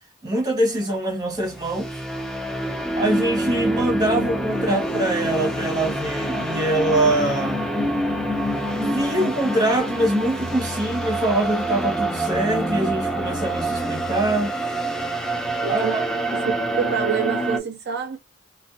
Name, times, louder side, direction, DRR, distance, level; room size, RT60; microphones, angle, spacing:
voice 1, 0.2-2.0 3.0-7.6 8.7-14.5 15.7-16.0, right 1 dB, 20° right, 0.9 m, -23 dB
sound 1, 1.3-17.6, right 1 dB, 5° left, 0.5 m, -26 dB
voice 2, 15.6-16.0 16.3-18.2, right 7 dB, 55° right, 0.4 m, -27 dB
2.4 x 2.1 x 2.4 m
head